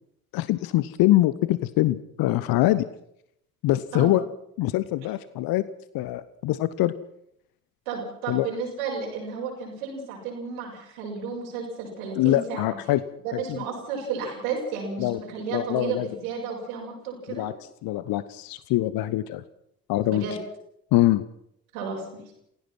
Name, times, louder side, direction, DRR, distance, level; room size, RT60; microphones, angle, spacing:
voice 1, 0.3-2.9 3.6-4.2 4.6-5.6 5.9-6.9 8.3-8.5 12.2-13.0 13.3-13.4 15.0-15.2 15.5-16.1 17.4-17.5 17.8-19.4 19.9-20.2 20.9-21.2, left 16 dB, 55° left, 15 dB, 1.0 m, -23 dB
voice 2, 7.9-12.8 13.2-17.5 20.0-20.4 21.7-22.3, right 5 dB, 75° right, -1 dB, 7.2 m, -33 dB
28.0 x 16.5 x 6.1 m, 0.75 s
figure-of-eight pair, 45°, 42 cm